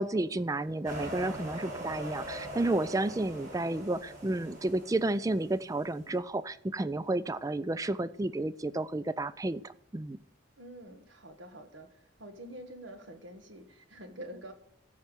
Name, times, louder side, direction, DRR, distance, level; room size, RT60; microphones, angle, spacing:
voice 1, 0.0-10.2, right 2 dB, 15° right, 16 dB, 0.4 m, -31 dB
sound 1, 0.8-5.8, equal, 45° right, 6.4 m, -42 dB
voice 2, 10.6-14.5, right 1 dB, 70° right, 7 dB, 1.6 m, -47 dB
13.5 x 5.7 x 7.9 m, 0.73 s
head